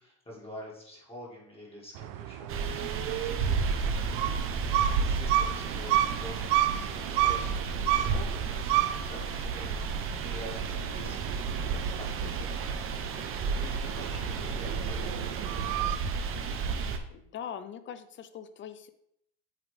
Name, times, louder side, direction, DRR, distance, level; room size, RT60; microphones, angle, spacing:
voice 1, 0.0-15.8, equal, 15° left, -3 dB, 1.8 m, -48 dB
sound 1, 1.9-16.0, right 13 dB, 75° right, 0.5 m, -32 dB
sound 2, 2.5-17.0, right 5 dB, 35° right, 0.7 m, -32 dB
voice 2, 17.1-18.9, left 8 dB, 35° left, 11 dB, 0.5 m, -41 dB
8.1 x 3.5 x 3.3 m, 0.72 s
supercardioid pair, 120°, 37 cm